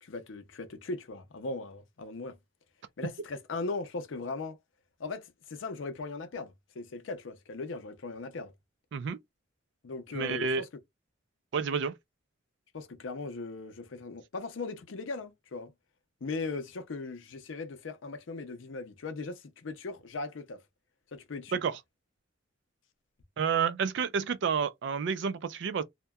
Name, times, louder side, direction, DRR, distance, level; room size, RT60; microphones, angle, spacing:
voice 1, 0.0-2.4 3.0-4.6 5.0-8.5 9.8-10.7 12.7-15.7 16.2-20.6 21.1-21.6, left 3 dB, 80° left, 0.6 m, -38 dB
voice 2, 10.1-10.6 11.5-11.9 21.5-21.8 23.4-25.8, right 6 dB, 65° right, 0.4 m, -30 dB
2.7 x 2.2 x 2.2 m
head